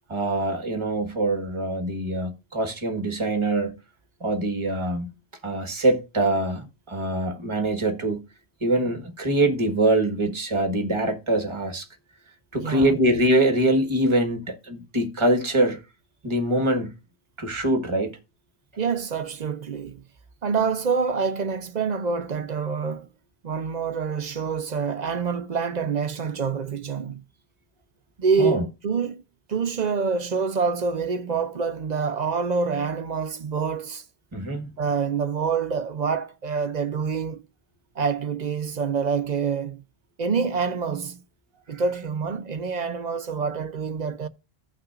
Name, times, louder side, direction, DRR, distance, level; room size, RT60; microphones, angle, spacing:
voice 1, 0.1-3.7 4.2-5.1 5.4-8.2 8.6-11.9 12.5-15.8 16.2-16.9 17.4-18.1 28.4-28.6 34.3-34.7 41.7-41.8, right 1 dB, 30° right, 1.4 m, -24 dB
voice 2, 12.5-12.9 18.8-20.0 20.4-23.1 23.4-27.2 28.2-29.2 29.5-34.0 34.8-37.4 38.0-39.8 40.2-41.2 41.7-44.3, right 5 dB, 50° right, 0.7 m, -26 dB
16.0 x 5.8 x 2.4 m
omnidirectional pair, 1.1 m